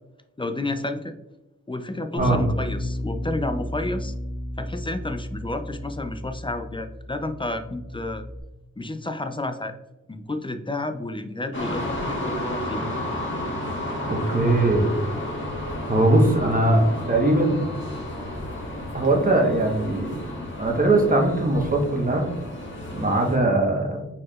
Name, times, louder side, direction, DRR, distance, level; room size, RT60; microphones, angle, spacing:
voice 1, 0.4-1.1 1.7-4.1 4.6-8.2 8.8-9.7 10.1-12.8, left 2 dB, 15° left, 8 dB, 0.4 m, -30 dB
Bass guitar, 2.2-8.4, left 1 dB, 80° left, 1.3 m, -33 dB
sound 1, 11.5-23.4, left 1 dB, 40° left, 1.6 m, -32 dB
voice 2, 14.0-14.9 15.9-17.6 18.9-20.2 20.6-22.3 22.9-24.0, right 2 dB, 25° right, 1 dB, 1.1 m, -20 dB
4.7 x 4.3 x 2.3 m, 0.95 s
wide cardioid pair, 70°, 31 cm